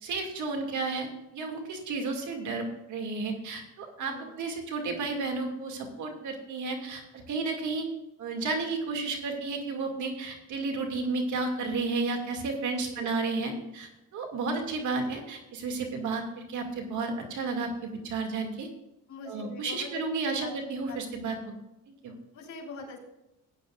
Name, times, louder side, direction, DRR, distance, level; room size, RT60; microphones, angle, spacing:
voice 1, 0.0-7.9 8.2-18.7 19.3-21.3 22.0-22.1, right 3 dB, 75° right, 3 dB, 2.4 m, -32 dB
voice 2, 4.0-4.4 12.8-13.1 19.1-20.0 20.4-20.5 20.9-21.0 22.3-23.0, left 4 dB, 70° left, -1 dB, 3.5 m, -42 dB
16.0 x 9.6 x 2.5 m, 0.91 s
cardioid pair, 90°, 30 cm